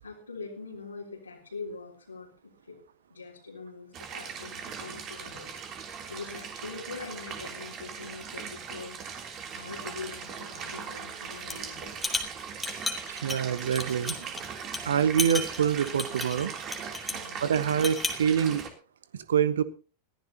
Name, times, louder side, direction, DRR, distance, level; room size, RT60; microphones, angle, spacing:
voice 1, 0.0-2.8 3.1-5.5 6.1-9.0 9.5-11.9 12.8-12.9 13.9-14.1 17.1-17.4, left 4 dB, 80° left, -4 dB, 3.4 m, -43 dB
sound 1, 3.9-18.7, right 6 dB, 30° right, 3.2 m, -40 dB
sound 2, 11.4-11.6 12.0-14.4 14.7-14.8 15.2-17.3 17.7-18.2, left 2 dB, 5° left, 2.5 m, -33 dB
voice 2, 13.1-14.3 14.8-16.5 17.4-18.6 19.1-19.6, right 8 dB, 65° right, 16 dB, 1.2 m, -26 dB
21.5 x 15.0 x 2.9 m, 0.35 s
figure-of-eight pair, 90°, 0 cm